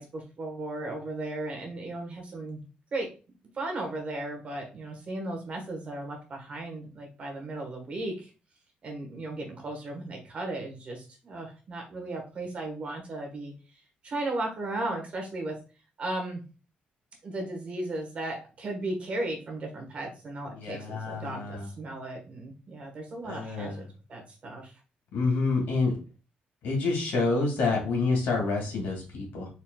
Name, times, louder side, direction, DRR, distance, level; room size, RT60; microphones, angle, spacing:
voice 1, 0.0-2.7 2.9-3.1 3.5-8.3 8.8-13.5 14.0-15.5 16.0-16.4 17.2-24.7, right 2 dB, 40° right, 2 dB, 1.3 m, -36 dB
voice 2, 20.5-21.7 23.2-23.8 25.1-25.9 26.6-29.5, left 3 dB, 85° left, 0 dB, 2.2 m, -28 dB
4.2 x 4.0 x 2.3 m, 0.34 s
cardioid pair, 155°, 3 cm